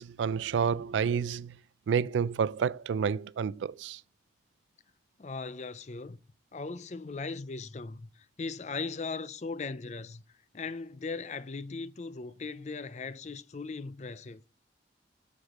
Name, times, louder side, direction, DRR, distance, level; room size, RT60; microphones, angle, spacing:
voice 1, 0.0-1.6 1.9-4.0, right 6 dB, 90° right, 0.3 m, -29 dB
voice 2, 5.2-6.2 6.5-10.2 10.5-14.4, left 4 dB, 40° left, 0.5 m, -38 dB
7.9 x 6.7 x 3.6 m
head